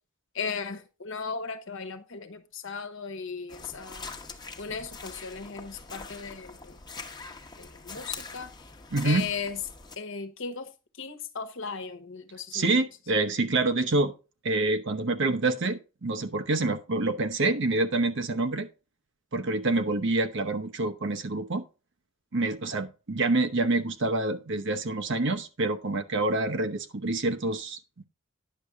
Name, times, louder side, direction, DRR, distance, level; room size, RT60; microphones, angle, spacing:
voice 1, 0.3-4.1 4.6-6.8 7.6-8.5 9.0-9.6 10.0-10.7 11.0-12.7, left 5 dB, 65° left, 1.1 m, -36 dB
sound 1, 3.5-10.0, left 4 dB, 20° left, 1.0 m, -43 dB
voice 2, 8.9-9.3 12.5-14.1 14.4-18.7 19.3-21.6 22.3-28.0, right 2 dB, 60° right, 0.9 m, -27 dB
10.0 x 6.8 x 3.6 m
head